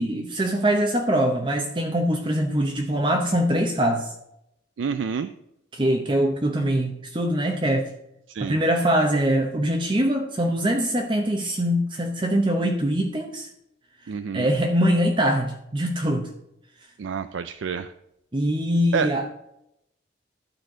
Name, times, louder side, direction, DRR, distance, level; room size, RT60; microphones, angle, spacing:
voice 1, 0.0-4.1 5.7-7.9 8.4-13.5 14.3-16.3 18.3-19.3, equal, 25° right, 3 dB, 0.7 m, -23 dB
voice 2, 4.8-5.3 8.3-8.6 14.1-14.5 17.0-17.9 18.9-19.1, right 6 dB, 80° right, 12 dB, 0.4 m, -28 dB
11.5 x 4.3 x 6.1 m, 0.81 s
head